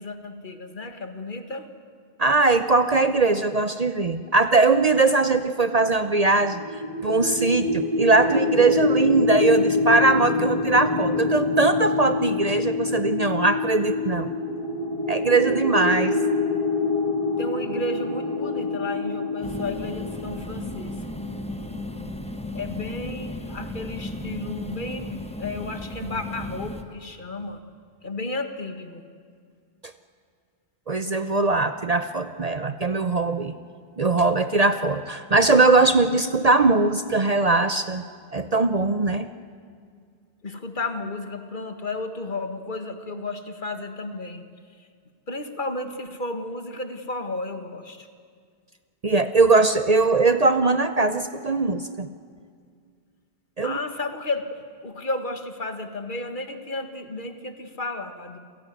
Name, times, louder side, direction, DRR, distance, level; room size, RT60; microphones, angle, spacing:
voice 1, 0.0-1.7 17.4-21.0 22.5-27.6 28.0-29.0 40.4-44.4 44.8-44.9 45.3-48.1 53.6-58.4, left 2 dB, 50° left, 8 dB, 1.7 m, -33 dB
voice 2, 2.2-6.6 7.0-14.3 15.1-16.1 30.9-33.5 34.0-38.0 38.3-39.3 49.0-52.1 53.6-53.8, right 3 dB, 40° right, 10 dB, 0.8 m, -20 dB
sound 1, 6.3-21.3, left 3 dB, 30° left, 2.3 m, -26 dB
sound 2, 19.4-26.8, left 1 dB, 5° left, 1.2 m, -35 dB
27.5 x 17.0 x 9.3 m, 2.1 s
omnidirectional pair, 1.1 m